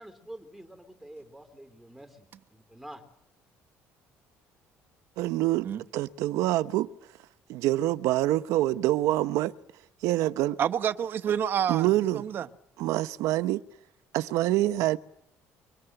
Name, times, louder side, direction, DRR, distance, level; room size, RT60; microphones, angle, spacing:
voice 1, 0.0-2.3 2.5-3.0, right 1 dB, ahead, 3.3 m, -47 dB
voice 2, 5.2-6.9 7.5-9.5 10.0-10.6 11.7-12.3 12.8-13.6 14.1-15.0, right 15 dB, 85° right, 1.0 m, -26 dB
voice 3, 10.6-12.5, right 9 dB, 45° right, 1.1 m, -28 dB
25.0 x 24.0 x 7.9 m
cardioid pair, 155°, 5 cm